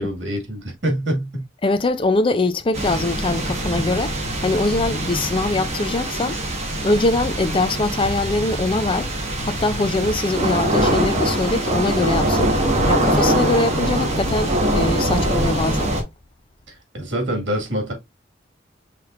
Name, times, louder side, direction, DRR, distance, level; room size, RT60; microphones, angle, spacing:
voice 1, 0.0-1.5 15.2-15.5 16.7-17.9, equal, 85° right, 2.0 m, -26 dB
voice 2, 1.6-4.1 4.4-6.4 6.8-9.1 9.4-15.9, left 2 dB, 30° left, 0.5 m, -22 dB
sound 1, 2.7-16.0, right 1 dB, 35° right, 1.5 m, -23 dB
5.9 x 3.3 x 2.5 m
head